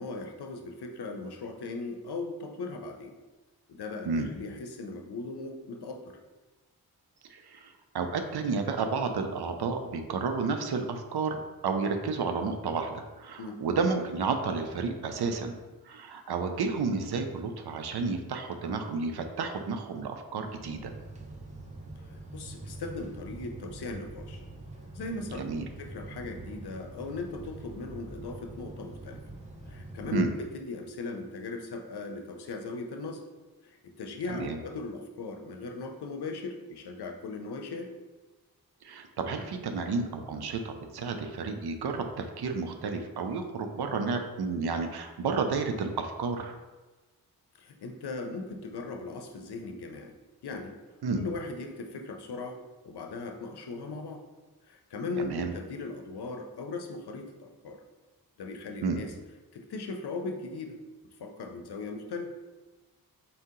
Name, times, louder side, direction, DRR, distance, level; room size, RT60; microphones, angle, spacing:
voice 1, 0.0-3.2 3.7-6.2 13.4-13.6 22.1-24.4 24.9-25.4 25.8-29.2 29.7-33.2 33.6-37.9 47.6-50.1 50.4-50.8 51.2-52.6 52.8-54.2 54.7-57.8 58.4-59.1 59.5-60.8 61.2-62.3, left 3 dB, 80° left, 4 dB, 0.6 m, -38 dB
voice 2, 7.3-15.6 15.8-20.9 25.3-25.7 30.1-30.3 34.3-34.6 38.8-46.6 51.0-51.2 55.2-55.5 58.8-59.0, right 4 dB, 80° right, 5 dB, 0.6 m, -31 dB
sound 1, 20.6-30.2, right 2 dB, 20° right, 0.7 m, -44 dB
4.3 x 2.7 x 3.7 m, 1.2 s
cardioid pair, 60°, 39 cm